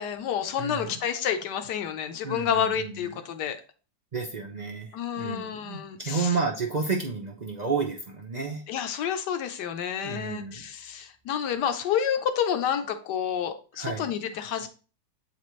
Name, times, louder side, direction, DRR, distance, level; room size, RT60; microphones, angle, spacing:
voice 1, 0.0-3.6 4.9-6.4 8.7-14.7, left 8 dB, 70° left, 8 dB, 1.3 m, -29 dB
voice 2, 0.6-1.0 2.2-3.1 4.1-8.6 10.0-10.7 13.8-14.0, right 4 dB, 60° right, -1 dB, 0.4 m, -31 dB
8.1 x 4.2 x 3.1 m, 0.37 s
omnidirectional pair, 2.0 m